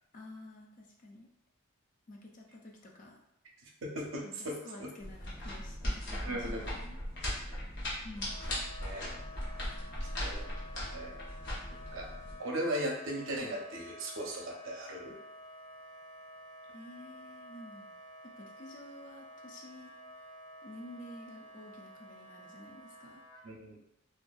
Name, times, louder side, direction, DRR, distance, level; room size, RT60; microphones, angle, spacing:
voice 1, 0.1-1.3 2.1-3.2 4.2-4.4 4.6-7.0 8.0-8.4 16.7-17.9 18.2-19.9 20.6-23.2, left 1 dB, 40° left, 0 dB, 0.4 m, -50 dB
voice 2, 3.8-4.9 6.2-6.7 8.8-9.1 10.2-10.5 10.9-11.2 11.7-12.1 12.4-15.1 23.4-23.8, right 1 dB, 70° right, -1 dB, 0.6 m, -38 dB
sound 1, 5.0-12.3, equal, 55° left, 0.8 m, -38 dB
Wind instrument woodwind instrument, 8.2-23.4, left 1 dB, 90° left, 1.3 m, -51 dB
2.6 x 2.3 x 2.2 m, 0.79 s
head